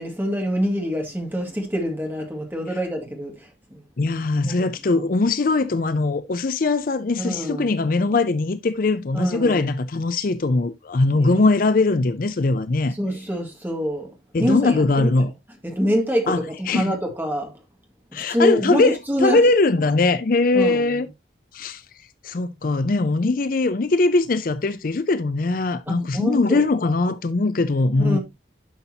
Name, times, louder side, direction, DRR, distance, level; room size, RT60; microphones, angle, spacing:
voice 1, 0.0-3.8 4.4-5.0 7.2-7.8 9.1-9.6 11.2-11.5 12.9-15.1 15.6-17.5 18.1-19.4 20.5-21.1 25.9-26.6 28.0-28.2, equal, 10° right, 2.0 m, -26 dB
voice 2, 4.0-12.9 14.3-15.3 16.3-16.4 16.7-16.9 18.1-19.0 19.2-21.1 21.5-21.8 22.2-28.2, left 3 dB, 45° left, 0.5 m, -21 dB
11.0 x 5.5 x 2.8 m
head